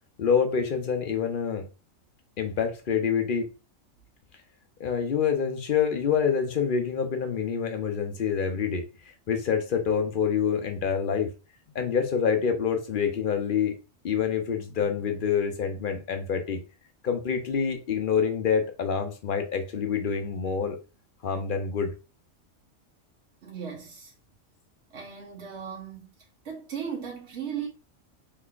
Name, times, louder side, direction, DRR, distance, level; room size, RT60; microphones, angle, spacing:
voice 1, 0.2-1.6 2.4-3.5 4.8-8.8 9.3-11.3 11.7-13.7 14.0-16.6 17.0-20.8 21.2-21.9, left 7 dB, 55° left, 0.6 m, -26 dB
voice 2, 23.4-24.1 24.9-26.1 26.4-27.7, right 7 dB, 60° right, 1.3 m, -36 dB
3.9 x 3.2 x 2.4 m
omnidirectional pair, 1.3 m